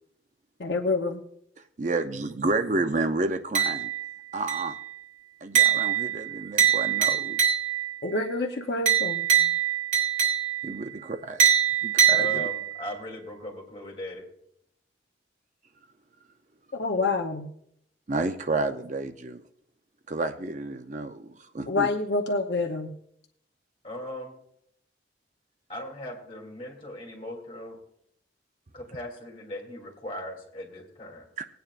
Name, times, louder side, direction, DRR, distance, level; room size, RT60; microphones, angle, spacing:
voice 1, 0.6-1.2 8.0-9.3 16.7-17.5 21.7-22.9, left 3 dB, 65° left, 3 dB, 0.8 m, -27 dB
voice 2, 1.8-3.9 4.3-4.8 5.4-7.4 9.4-9.5 10.6-11.5 11.8-12.5 18.1-19.4 20.1-21.9 31.4-31.5, right 2 dB, 40° right, 8 dB, 0.5 m, -30 dB
sound 1, 3.5-4.1 4.5-4.9 5.5-8.0 8.9-10.8 11.4-12.8, right 9 dB, 90° right, 3.3 m, -23 dB
voice 3, 12.1-14.3 23.8-24.4 25.7-27.8 28.7-31.3, left 1 dB, 30° left, -1 dB, 2.9 m, -38 dB
20.0 x 9.2 x 2.5 m, 0.70 s
head